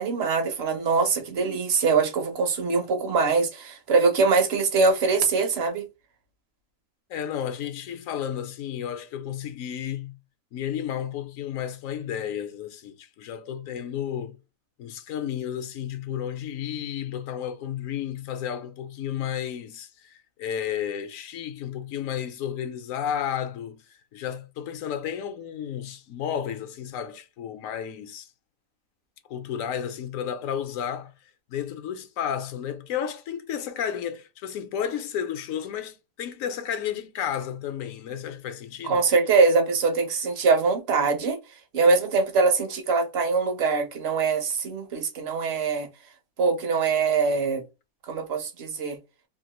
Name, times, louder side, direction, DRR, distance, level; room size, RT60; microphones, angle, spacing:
voice 1, 0.0-5.9 38.8-41.4 41.7-45.9 46.4-47.6 48.0-49.0, right 4 dB, 55° right, 0.9 m, -23 dB
voice 2, 7.1-10.2 10.5-14.4 14.8-23.8 24.1-28.3 29.3-31.1 31.5-39.1, left 9 dB, 75° left, 1.0 m, -32 dB
3.0 x 2.4 x 2.9 m
omnidirectional pair, 1.4 m